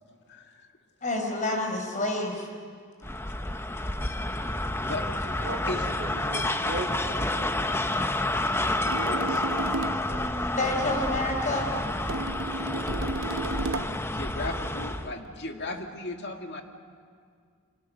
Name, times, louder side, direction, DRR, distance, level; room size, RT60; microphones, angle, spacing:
voice 1, 0.3-0.7 4.7-5.1 5.7-5.9 9.0-9.5 14.1-16.6, left 2 dB, 55° left, 4 dB, 2.1 m, -36 dB
voice 2, 1.0-2.5 10.6-11.7, left 2 dB, 40° left, 3 dB, 4.5 m, -28 dB
sound 1, 3.0-15.1, left 1 dB, 10° left, 0.9 m, -29 dB
voice 3, 5.3-6.9 7.2-7.7 10.0-10.3 12.4-13.1, right 2 dB, 50° right, 1 dB, 3.9 m, -39 dB
sound 2, 8.9-10.1 12.1-14.0, right 3 dB, 65° right, 0.7 m, -33 dB
30.0 x 25.0 x 6.6 m, 2.1 s
head